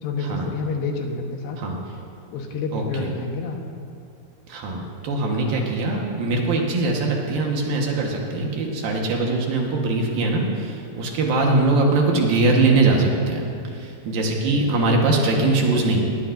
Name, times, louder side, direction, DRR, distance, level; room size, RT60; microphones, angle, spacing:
voice 1, 0.0-1.6 2.3-3.6 5.3-5.8 15.1-15.9, left 3 dB, 90° left, 2 dB, 3.4 m, -29 dB
voice 2, 2.7-3.1 4.5-13.4 13.7-16.0, right 3 dB, 65° right, 0 dB, 2.9 m, -21 dB
19.0 x 18.5 x 2.6 m, 2.4 s
omnidirectional pair, 4.8 m